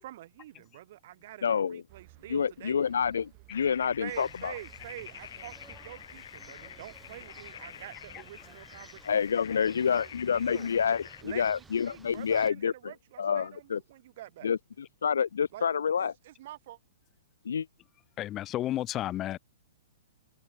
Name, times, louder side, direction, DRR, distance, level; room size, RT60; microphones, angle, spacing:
voice 1, 0.0-2.8 4.0-10.7 11.2-14.5 15.5-16.8, right 14 dB, 50° right, 0.8 m, -47 dB
voice 2, 1.4-1.8 2.3-4.5 9.1-12.7 13.2-13.8 14.4-16.1 17.5-17.7, left 7 dB, 90° left, 0.3 m, -28 dB
sound 1, 1.9-9.8, right 38 dB, 35° right, 5.4 m, -59 dB
sound 2, 3.5-11.2, left 10 dB, 65° left, 0.7 m, -47 dB
sound 3, 4.1-12.5, right 4 dB, 10° right, 3.1 m, -55 dB
voice 3, 18.2-19.4, left 13 dB, 25° left, 0.4 m, -32 dB
hypercardioid pair, 150°, 0 cm